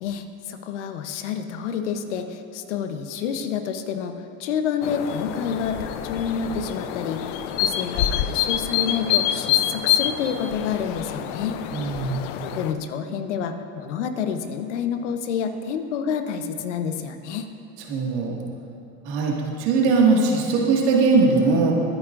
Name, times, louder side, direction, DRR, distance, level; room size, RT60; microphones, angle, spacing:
voice 1, 0.0-4.1 4.4-11.6 12.4-17.5, left 7 dB, 85° left, 7 dB, 1.0 m, -28 dB
sound 1, 4.8-12.7, left 11 dB, 70° left, 0.7 m, -26 dB
voice 2, 11.7-12.2 17.9-18.4 19.0-21.7, right 4 dB, 80° right, -2 dB, 2.0 m, -20 dB
22.0 x 10.0 x 2.6 m, 2.6 s
hypercardioid pair, 80°, 34 cm